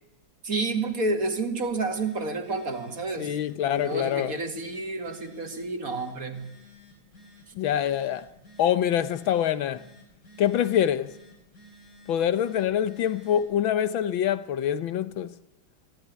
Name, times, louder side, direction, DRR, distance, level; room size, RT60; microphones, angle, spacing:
voice 1, 0.4-3.3 3.7-6.5, right 3 dB, 45° right, 2.5 m, -30 dB
Telephone, 1.6-13.6, left 1 dB, 50° left, 6.2 m, -53 dB
voice 2, 3.2-4.3 7.6-8.3 8.6-9.8 10.4-11.1 12.1-15.3, left 10 dB, 75° left, 1.8 m, -25 dB
24.0 x 15.5 x 9.5 m
omnidirectional pair, 2.2 m